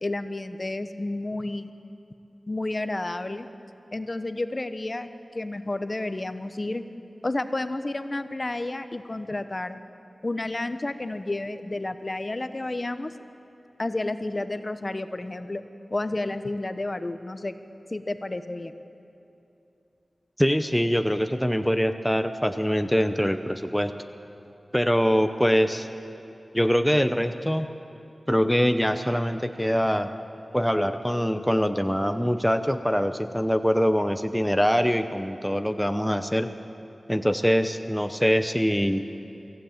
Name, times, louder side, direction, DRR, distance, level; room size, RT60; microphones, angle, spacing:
voice 1, 0.0-1.7 2.5-3.5 3.9-5.1 5.3-6.8 7.2-9.8 10.2-13.1 13.8-15.6 15.9-17.5 17.9-18.8, left 2 dB, 35° left, 10 dB, 0.9 m, -31 dB
voice 2, 20.4-23.9 24.7-25.9 26.5-27.7 28.3-30.1 30.5-36.5 37.1-39.0, equal, ahead, 8 dB, 0.7 m, -23 dB
24.0 x 15.5 x 8.8 m, 2.8 s
wide cardioid pair, 95°, 0 cm